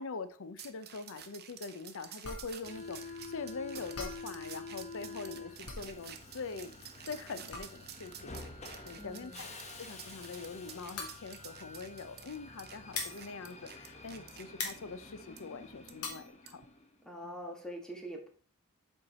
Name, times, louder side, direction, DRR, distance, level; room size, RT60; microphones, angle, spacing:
voice 1, 0.0-6.8 7.1-8.4 8.8-9.5 9.8-16.6 17.2-17.3, left 4 dB, 65° left, 12 dB, 0.6 m, -43 dB
sound 1, 0.6-14.7 15.4-15.5 15.9-16.0 16.5-16.6, right 9 dB, 45° right, 0.8 m, -51 dB
sound 2, 2.2-14.2 14.5-16.3, left 4 dB, 80° left, 1.6 m, -44 dB
Subway metro underground, 2.6-17.0, left 3 dB, 30° left, 1.0 m, -48 dB
voice 2, 9.0-9.4 17.0-18.3, equal, 5° left, 1 dB, 1.5 m, -44 dB
7.8 x 4.5 x 4.2 m, 0.43 s
head